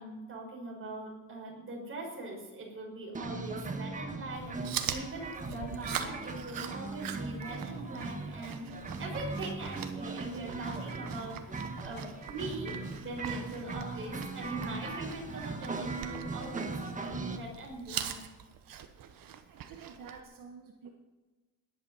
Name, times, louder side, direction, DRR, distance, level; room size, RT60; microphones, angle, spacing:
voice 1, 0.0-8.7 9.0-12.7 13.0-18.2, right 2 dB, 40° right, -1 dB, 5.8 m, -42 dB
sound 1, 3.2-17.4, right 3 dB, 25° right, 1.6 m, -39 dB
Chewing mastication, 4.3-20.2, right 9 dB, 90° right, 1.4 m, -43 dB
voice 2, 19.2-20.9, right 6 dB, 75° right, 2 dB, 1.6 m, -50 dB
18.0 x 11.5 x 5.7 m, 1.3 s
wide cardioid pair, 145°, 33 cm